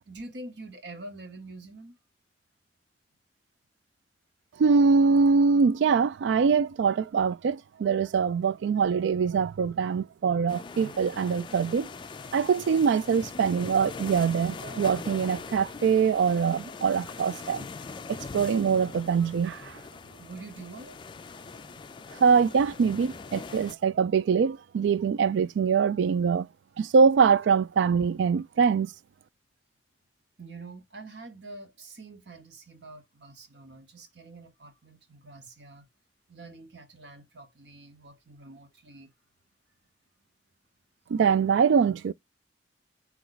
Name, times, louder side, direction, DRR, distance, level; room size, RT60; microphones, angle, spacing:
voice 1, 0.1-2.0 20.2-21.0 30.4-35.9 36.3-39.1, right 2 dB, 70° right, 1.1 m, -45 dB
voice 2, 4.6-11.9 12.3-17.6 18.1-19.8 22.2-26.5 26.8-28.9 41.1-42.1, right 5 dB, 90° right, 0.3 m, -23 dB
sound 1, 10.5-23.7, left 4 dB, 25° left, 0.3 m, -42 dB
4.3 x 3.1 x 3.9 m
head